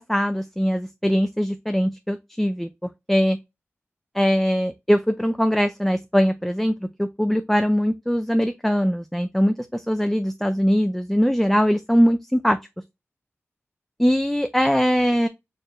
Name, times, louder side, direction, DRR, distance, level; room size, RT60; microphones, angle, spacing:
voice 1, 0.0-2.7 3.1-3.4 4.2-12.6 14.0-15.3, equal, 5° left, 0.4 m, -21 dB
4.5 x 2.5 x 3.1 m
wide cardioid pair, 70°, 5 cm